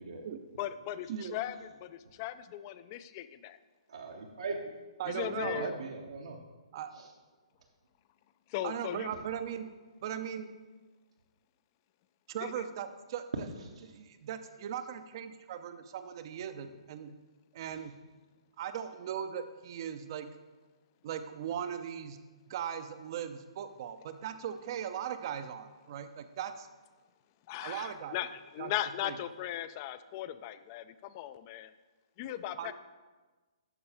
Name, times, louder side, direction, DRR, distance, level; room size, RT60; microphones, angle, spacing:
voice 1, 0.6-3.6 5.1-5.7 8.5-9.1 12.4-12.6 27.5-31.7 32.2-32.7, left 12 dB, 35° left, 13 dB, 0.4 m, -38 dB
voice 2, 3.9-4.6 5.4-6.4 7.0-7.1, right 4 dB, 75° right, 0 dB, 0.9 m, -40 dB
voice 3, 5.0-5.8 6.7-6.9 8.6-10.5 12.3-13.5 13.8-17.1 17.5-17.9 18.6-20.4 21.0-22.2 22.5-26.7 27.6-28.3 28.6-28.7 29.0-29.2 32.6-32.7, right 9 dB, 45° right, 10 dB, 0.5 m, -39 dB
12.0 x 4.4 x 3.3 m, 1.3 s
figure-of-eight pair, 130°, 3 cm